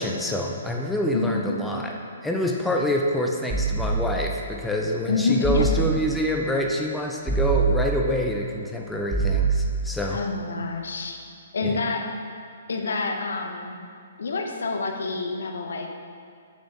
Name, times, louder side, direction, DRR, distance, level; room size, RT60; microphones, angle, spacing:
voice 1, 0.0-1.9 2.2-10.2 11.6-11.8, left 1 dB, 5° left, 0 dB, 0.7 m, -26 dB
voice 2, 1.1-1.6 5.1-5.8 10.1-11.2 11.5-12.1 12.7-13.8 14.2-15.9, left 3 dB, 65° left, 3 dB, 1.0 m, -27 dB
sound 1, 3.5-4.5 5.4-6.3 7.3-8.4 9.1-10.2, right 4 dB, 20° right, 1.4 m, -25 dB
6.8 x 6.3 x 7.1 m, 2.2 s
figure-of-eight pair, 125°, 0 cm